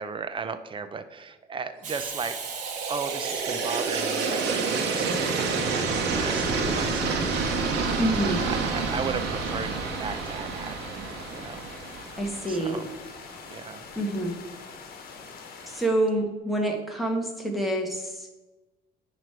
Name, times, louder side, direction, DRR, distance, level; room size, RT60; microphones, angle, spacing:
voice 1, 0.0-2.4 2.9-5.3 6.0-7.7 8.2-9.7 10.0-11.7 12.5-12.9 13.5-13.8, right 5 dB, 30° right, 11 dB, 0.6 m, -36 dB
Hiss, 1.8-7.2, right 5 dB, 45° right, 1.1 m, -41 dB
sound 1, 1.9-13.0, right 4 dB, 85° right, 1.3 m, -29 dB
sound 2, 6.1-15.9, left 5 dB, 60° left, 1.2 m, -44 dB
voice 2, 8.0-8.4 12.2-12.8 13.9-14.4 15.7-18.3, right 1 dB, ahead, 0 dB, 1.4 m, -27 dB
9.3 x 3.2 x 5.9 m, 1.1 s
cardioid pair, 110°, 17 cm